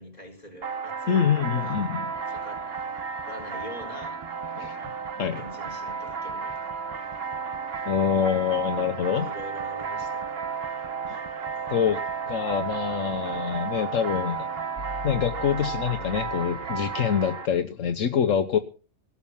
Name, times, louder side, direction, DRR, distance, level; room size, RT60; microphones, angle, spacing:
voice 1, 0.0-1.2 1.5-1.8 2.3-2.6 3.2-4.2 5.3-6.5 9.1-10.5, left 1 dB, 30° left, 1 dB, 4.4 m, -43 dB
sound 1, 0.6-17.5, right 6 dB, 50° right, 1.3 m, -33 dB
voice 2, 1.1-2.1 4.6-4.8 5.2-5.4 7.9-9.3 11.7-12.0 12.3-14.4 15.0-18.6, left 8 dB, 75° left, 8 dB, 1.3 m, -25 dB
sound 2, 2.0-16.9, right 1 dB, 25° right, 1.0 m, -46 dB
17.5 x 7.2 x 7.2 m, 0.36 s
omnidirectional pair, 1.4 m